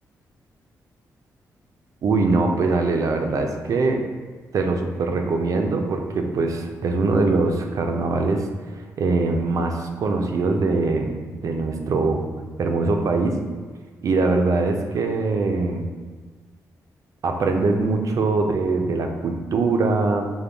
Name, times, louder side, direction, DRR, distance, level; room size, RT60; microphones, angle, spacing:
voice 1, 2.0-4.1 4.5-8.5 8.7-11.1 11.4-12.2 12.6-13.4 14.0-15.9 17.2-20.3, right 3 dB, 60° right, 4 dB, 0.5 m, -22 dB
5.3 x 2.2 x 3.3 m, 1.4 s
cardioid pair, 110°, 7 cm